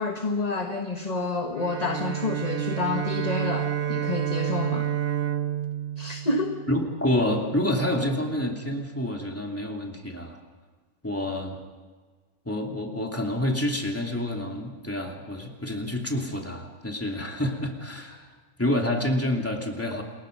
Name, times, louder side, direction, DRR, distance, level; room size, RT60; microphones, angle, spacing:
voice 1, 0.0-4.9 6.0-6.6, left 3 dB, 25° left, 4 dB, 1.3 m, -29 dB
Bowed string instrument, 1.5-7.0, right 10 dB, 45° right, 1.0 m, -29 dB
voice 2, 6.7-10.4 11.0-11.6 12.5-18.3 18.6-20.0, left 1 dB, 10° left, 1 dB, 2.7 m, -28 dB
29.0 x 21.5 x 5.3 m, 1.4 s
omnidirectional pair, 1.6 m